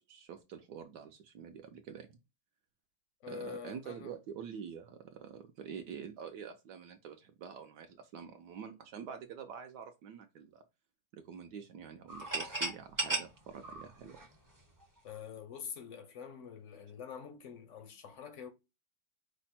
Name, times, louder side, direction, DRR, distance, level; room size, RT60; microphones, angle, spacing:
voice 1, 0.0-2.2 3.3-10.6 11.1-14.2, right 7 dB, 70° right, 1.0 m, -47 dB
voice 2, 3.2-4.1 15.0-18.5, left 6 dB, 65° left, 0.7 m, -46 dB
sound 1, 12.1-14.8, right 3 dB, 25° right, 0.4 m, -36 dB
5.1 x 2.1 x 4.1 m
omnidirectional pair, 2.1 m